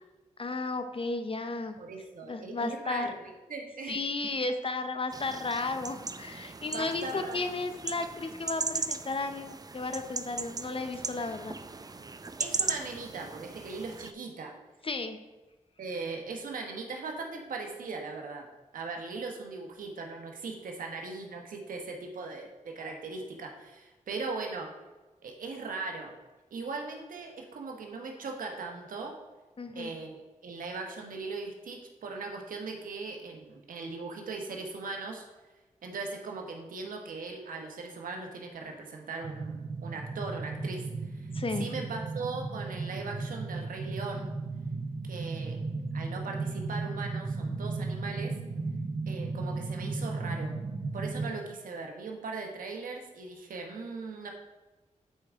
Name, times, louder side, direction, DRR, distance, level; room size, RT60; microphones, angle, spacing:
voice 1, 0.4-1.8 2.2-3.1 3.9-11.6 14.8-15.2 29.6-29.9 41.3-41.7, left 3 dB, 40° left, 8 dB, 0.8 m, -34 dB
voice 2, 1.8-4.0 6.7-7.5 12.4-14.5 15.8-18.5 18.7-24.7 25.2-26.1 26.5-29.1 29.7-35.2 35.8-41.3 41.6-44.3 45.0-45.6 45.9-48.3 49.1-50.5 50.9-54.3, right 3 dB, 85° right, 2 dB, 1.1 m, -39 dB
sound 1, 5.1-14.1, right 3 dB, 30° right, 0.4 m, -38 dB
sound 2, 39.2-51.3, right 3 dB, 45° right, 0.9 m, -35 dB
8.8 x 4.6 x 3.6 m, 1.2 s
cardioid pair, 50°, 14 cm